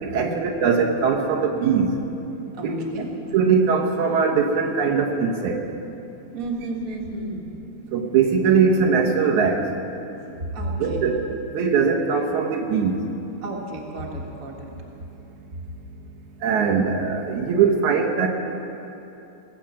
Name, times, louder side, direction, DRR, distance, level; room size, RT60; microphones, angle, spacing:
voice 1, 0.0-1.9 2.6-2.8 3.3-5.6 7.9-9.6 10.8-13.0 16.4-18.3, right 5 dB, 75° right, 1 dB, 2.5 m, -21 dB
voice 2, 2.5-3.1 6.3-7.5 10.5-11.0 13.4-14.7, right 2 dB, 35° right, -1 dB, 1.7 m, -32 dB
19.0 x 8.6 x 7.5 m, 3.0 s
omnidirectional pair, 3.4 m